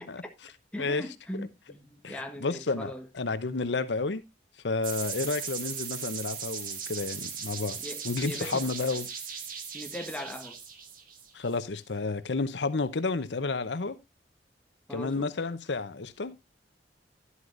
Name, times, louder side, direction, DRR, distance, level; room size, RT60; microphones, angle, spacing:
voice 1, 0.7-3.1 7.8-8.7 9.7-10.6 14.9-15.3, left 1 dB, 5° left, 1.3 m, -40 dB
voice 2, 2.0-4.2 4.6-7.8 8.0-9.1 11.3-14.0 14.9-16.4, left 3 dB, 80° left, 0.8 m, -31 dB
sound 1, 4.8-11.5, right 7 dB, 50° right, 1.5 m, -38 dB
11.5 x 11.0 x 2.6 m
head